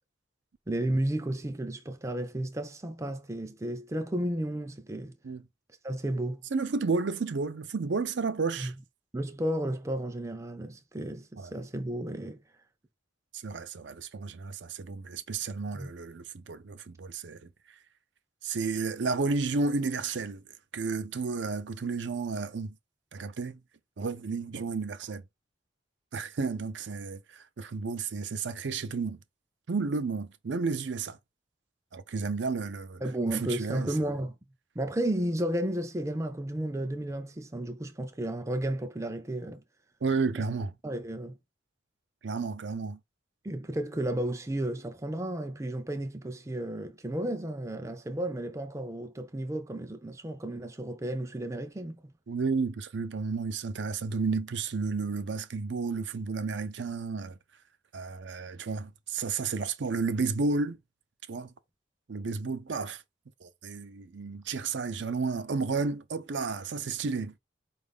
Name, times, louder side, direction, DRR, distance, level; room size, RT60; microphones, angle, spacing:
voice 1, 0.7-5.2 5.8-6.5 8.6-8.7 9.1-12.4 15.7-15.9 33.0-34.4 34.8-39.6 40.8-41.4 43.4-52.1, right 1 dB, 15° right, 0.4 m, -33 dB
voice 2, 6.5-8.7 11.4-11.5 13.3-17.5 18.4-20.4 20.7-22.7 23.1-23.6 24.0-25.2 26.1-29.2 29.7-31.2 31.9-33.9 40.0-40.7 42.2-43.0 52.3-57.4 57.9-60.8 61.3-61.5 62.1-63.0 63.4-67.4, right 4 dB, 70° right, 0.5 m, -32 dB
4.6 x 2.5 x 3.5 m
head